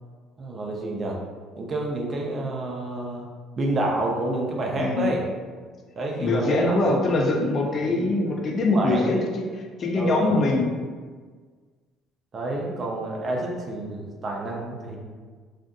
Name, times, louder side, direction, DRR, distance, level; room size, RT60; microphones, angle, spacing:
voice 1, 0.4-1.2 1.6-3.3 3.6-5.2 6.0-6.8 7.8-8.1 8.7-9.2 9.9-10.4 12.3-15.0, right 2 dB, 40° right, -1 dB, 0.5 m, -29 dB
voice 2, 4.8-5.2 6.2-10.7, left 2 dB, 45° left, 0 dB, 0.4 m, -23 dB
2.5 x 2.5 x 2.3 m, 1.5 s
supercardioid pair, 80°, 0 cm